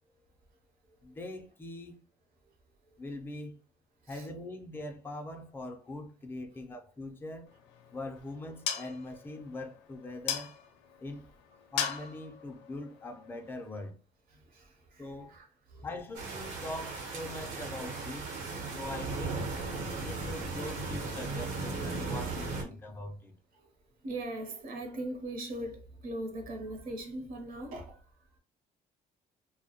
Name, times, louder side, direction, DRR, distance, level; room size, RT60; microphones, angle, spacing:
voice 1, 1.0-2.0 3.0-3.6 4.1-7.5 7.9-10.5 11.0-11.3 11.7-14.0 15.0-15.4 15.8-19.4 20.0-23.3, left 2 dB, 10° left, 0.4 m, -42 dB
sound 1, 7.5-13.9, left 8 dB, 85° left, 0.4 m, -40 dB
voice 2, 14.3-15.9 19.8-20.0 20.3-20.4 22.6-23.0 23.5-28.3, right 1 dB, 60° right, 0.7 m, -41 dB
sound 2, 16.1-22.6, right 3 dB, 85° right, 1.0 m, -36 dB
2.2 x 2.0 x 2.8 m
cardioid pair, 110°, 17 cm